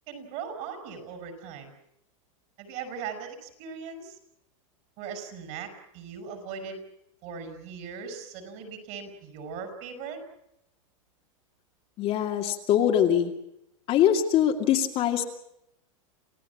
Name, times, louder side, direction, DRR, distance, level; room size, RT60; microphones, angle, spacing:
voice 1, 0.1-1.7 2.6-4.2 5.0-6.8 7.2-10.2, right 6 dB, 45° right, 7 dB, 6.7 m, -39 dB
voice 2, 12.0-13.3 13.9-15.2, left 10 dB, 35° left, 3 dB, 2.5 m, -23 dB
28.5 x 16.0 x 8.6 m, 0.80 s
supercardioid pair, 145°, 17 cm